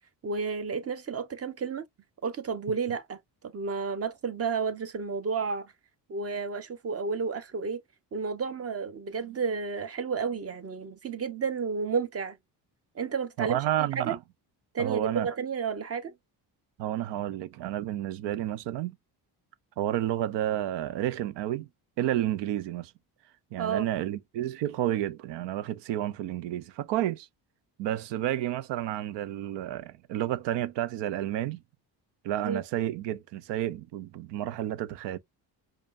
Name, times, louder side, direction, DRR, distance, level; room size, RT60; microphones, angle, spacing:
voice 1, 0.2-1.8 2.2-3.2 3.4-5.7 6.1-7.8 8.1-12.4 12.9-14.2 14.7-16.1 23.6-23.9 32.4-32.6, right 5 dB, 35° right, 0.9 m, -31 dB
voice 2, 13.4-14.2 14.8-15.3 16.8-18.9 19.8-21.7 22.0-22.9 23.5-27.3 27.8-31.6 32.2-35.2, right 12 dB, 85° right, 0.6 m, -30 dB
5.1 x 2.4 x 2.5 m
cardioid pair, 100°, 42 cm